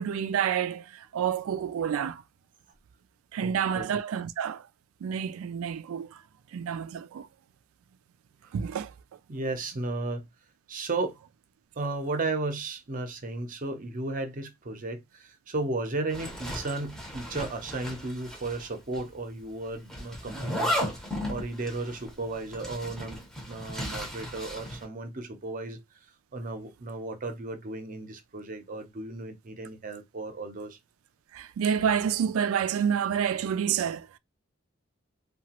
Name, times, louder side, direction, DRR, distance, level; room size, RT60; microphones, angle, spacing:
voice 1, 0.0-2.2 3.3-4.7 5.0-6.2 6.5-7.3 8.5-8.9 31.3-34.2, right 8 dB, 85° right, 0.3 m, -29 dB
voice 2, 3.4-3.9 8.5-8.6 9.3-10.3 10.7-11.2 11.8-23.2 23.5-25.8 26.3-30.8, right 2 dB, 40° right, 0.6 m, -34 dB
Zipper (clothing), 16.1-18.7 18.9-19.0 19.9-24.8, equal, ahead, 0.7 m, -35 dB
2.9 x 2.2 x 2.9 m
head